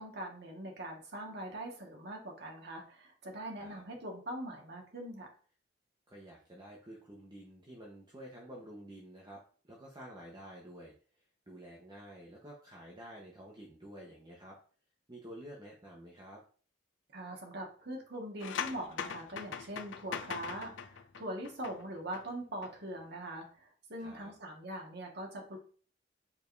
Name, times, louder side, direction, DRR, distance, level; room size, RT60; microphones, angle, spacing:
voice 1, 0.0-5.3 17.1-25.6, right 1 dB, 60° right, 0 dB, 1.8 m, -42 dB
voice 2, 6.1-10.9 11.5-14.6 15.1-16.4 24.0-24.3, right 1 dB, 25° right, -3 dB, 1.2 m, -50 dB
sound 1, 18.4-22.2 22.5-22.7, left 7 dB, 80° left, 0.5 m, -41 dB
7.0 x 5.1 x 2.7 m, 0.41 s
head